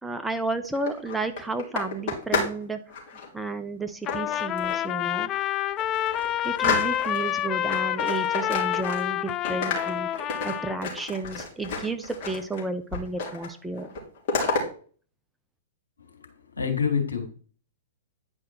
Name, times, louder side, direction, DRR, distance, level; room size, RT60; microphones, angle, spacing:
voice 1, 0.0-2.8 3.3-5.3 6.4-13.9, right 3 dB, 5° right, 0.8 m, -32 dB
sound 1, 0.6-2.6 2.9-3.3 4.1-4.9 5.4-5.5 5.8-7.3 7.7-9.2 9.5-12.6 12.9-13.5 13.8-14.6, left 4 dB, 45° left, 3.2 m, -31 dB
Trumpet, 4.1-10.8, left 12 dB, 30° left, 0.4 m, -28 dB
voice 2, 16.2-17.3, left 6 dB, 80° left, 2.1 m, -27 dB
9.8 x 5.0 x 4.4 m
figure-of-eight pair, 105°, 0 cm